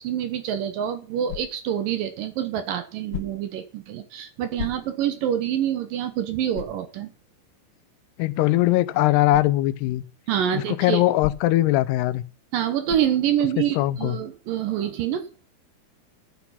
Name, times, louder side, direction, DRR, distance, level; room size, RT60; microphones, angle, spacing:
voice 1, 0.0-7.1 10.3-11.0 12.5-15.3, right 10 dB, 70° right, 2.4 m, -26 dB
sound 1, 1.3-1.8 3.1-3.6 4.6-5.2 5.7-5.8 6.5-6.9 9.3-9.6 11.2-11.7 12.9-13.2, left 12 dB, 70° left, 2.4 m, -36 dB
voice 2, 8.2-10.0 10.5-12.2 13.8-14.2, left 16 dB, 90° left, 2.8 m, -21 dB
11.5 x 8.2 x 5.7 m
omnidirectional pair, 4.6 m